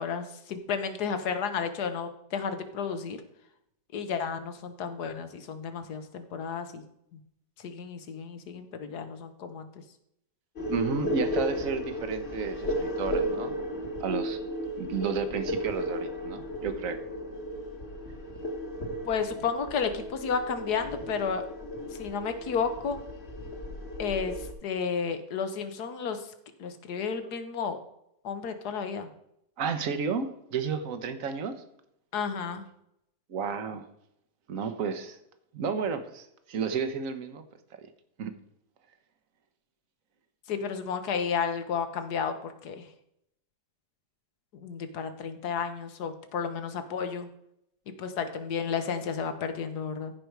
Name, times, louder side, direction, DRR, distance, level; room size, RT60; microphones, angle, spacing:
voice 1, 0.0-3.2 3.9-6.8 7.6-9.7 19.0-21.5 22.0-23.0 24.0-24.3 24.6-26.2 26.6-27.8 28.2-29.1 32.1-32.6 40.5-42.8 44.5-47.3 48.0-50.1, left 6 dB, 70° left, 9 dB, 1.6 m, -32 dB
sound 1, 10.6-24.5, equal, 40° left, 1.7 m, -34 dB
voice 2, 10.7-13.5 14.0-14.4 14.8-17.0 29.6-31.6 33.3-33.9 34.5-35.2 35.5-37.5 38.2-38.3, right 5 dB, 55° right, 10 dB, 1.3 m, -32 dB
15.0 x 5.2 x 4.6 m, 0.78 s
omnidirectional pair, 1.8 m